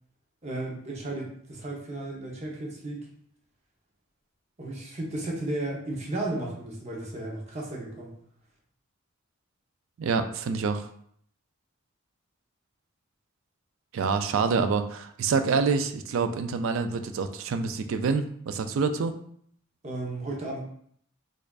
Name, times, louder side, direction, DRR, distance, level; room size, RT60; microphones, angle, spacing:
voice 1, 0.4-3.0 4.6-8.1 19.8-20.6, right 2 dB, 30° right, -2 dB, 0.7 m, -34 dB
voice 2, 10.0-10.9 13.9-19.2, right 5 dB, 70° right, 8 dB, 0.3 m, -27 dB
4.5 x 2.4 x 2.3 m, 0.65 s
head